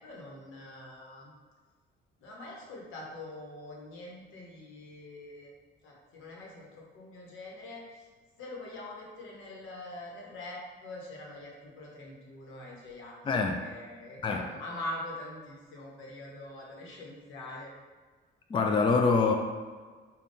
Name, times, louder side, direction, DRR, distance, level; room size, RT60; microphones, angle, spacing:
voice 1, 0.0-1.3 2.2-5.5 5.8-8.1 8.4-17.7, left 1 dB, 85° left, -2 dB, 0.9 m, -44 dB
voice 2, 13.3-13.6 14.2-14.4 18.5-19.3, left 4 dB, 25° left, 3 dB, 0.4 m, -25 dB
3.5 x 2.3 x 3.9 m, 1.5 s
cardioid pair, 90°, 20 cm